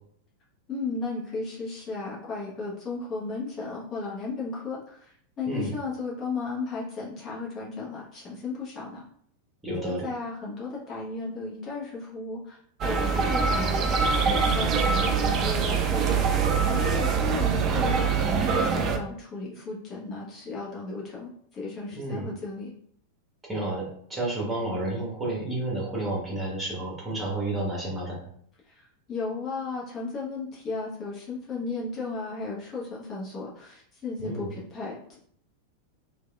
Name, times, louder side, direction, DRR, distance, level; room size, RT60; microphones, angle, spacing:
voice 1, 0.7-9.0 9.8-13.9 14.2-16.3 16.6-22.7 28.7-35.2, left 3 dB, 30° left, -5 dB, 1.1 m, -35 dB
voice 2, 9.6-10.1 22.0-22.3 23.4-28.2 34.2-34.5, right 2 dB, 15° right, -4 dB, 1.1 m, -31 dB
sound 1, 12.8-19.0, right 5 dB, 35° right, 0.4 m, -24 dB
3.2 x 2.4 x 2.3 m, 0.63 s
figure-of-eight pair, 90°, 0 cm